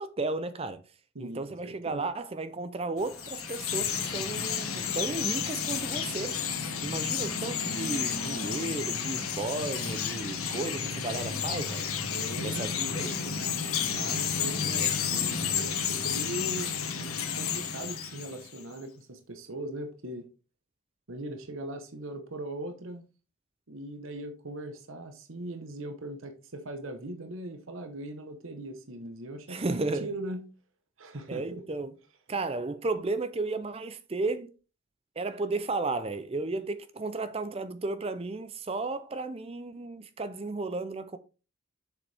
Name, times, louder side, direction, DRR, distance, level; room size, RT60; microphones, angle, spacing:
voice 1, 0.0-6.4 6.8-11.9 12.4-13.4 29.5-30.1 31.3-31.9 32.3-34.5 35.2-41.2, right 3 dB, 25° right, 0.4 m, -34 dB
voice 2, 1.1-2.0 12.1-12.7 13.9-16.7 17.4-20.3 21.1-23.0 23.7-30.4 31.0-31.6, right 1 dB, 65° right, 1.0 m, -40 dB
Chirp tweet, 3.0-18.6, left 7 dB, 85° left, 1.5 m, -31 dB
sound 1, 3.0-15.7, left 1 dB, 5° right, 2.5 m, -50 dB
7.0 x 6.9 x 3.4 m
head